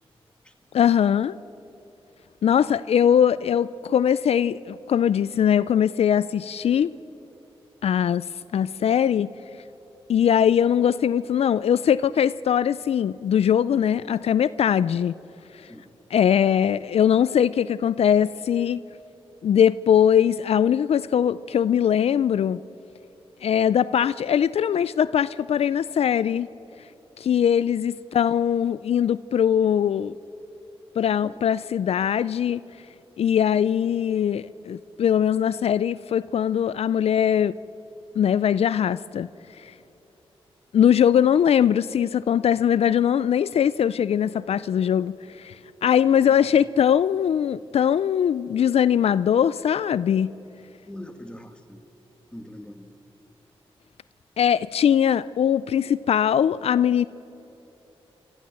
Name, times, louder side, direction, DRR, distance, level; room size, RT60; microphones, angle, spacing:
voice 1, 0.7-1.4 2.4-6.9 7.8-8.3 8.5-9.3 10.1-15.2 16.1-18.8 19.4-22.6 23.4-26.5 27.2-30.2 31.0-32.6 33.2-37.5 38.2-39.3 39.6-39.7 40.7-50.3 54.4-57.0, left 9 dB, 80° left, 17 dB, 0.4 m, -21 dB
voice 2, 45.9-46.4 50.9-51.8 52.3-52.9, left 1 dB, 10° left, 6 dB, 1.8 m, -42 dB
28.5 x 14.0 x 7.6 m, 3.0 s
cardioid pair, 65°, 10 cm